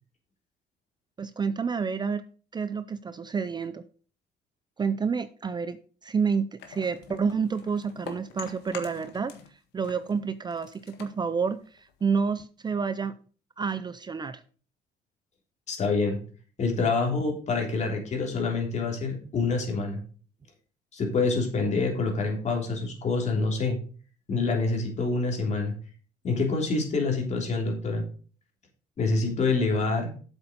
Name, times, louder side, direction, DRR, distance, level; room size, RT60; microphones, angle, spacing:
voice 1, 1.2-2.2 2.5-3.8 4.8-9.3 9.7-11.6 12.0-13.1 13.6-14.4, right 5 dB, 25° right, 13 dB, 0.5 m, -29 dB
sound 1, 6.6-9.5 9.8-12.2, left 7 dB, 85° left, 1.7 m, -45 dB
voice 2, 15.7-16.2 16.6-20.0 20.9-23.8 24.3-25.7 26.2-28.0 29.0-30.2, left 3 dB, 45° left, 2 dB, 3.4 m, -26 dB
8.0 x 7.1 x 5.2 m, 0.40 s
cardioid pair, 110°, 17 cm